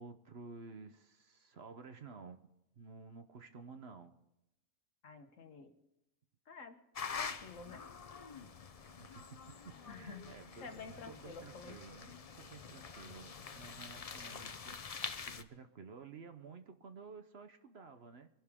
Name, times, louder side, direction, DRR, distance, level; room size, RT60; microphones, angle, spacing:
voice 1, 0.0-2.4 2.8-4.1 9.0-9.4 9.6-18.3, right 4 dB, 50° right, 8 dB, 1.0 m, -53 dB
voice 2, 5.0-5.7 6.5-6.8 7.1-7.8 9.8-10.3 10.6-11.8, left 4 dB, 65° left, 7 dB, 1.5 m, -50 dB
sound 1, 7.0-15.4, left 5 dB, 40° left, 0.5 m, -46 dB
23.5 x 11.5 x 3.6 m, 0.91 s
omnidirectional pair, 1.5 m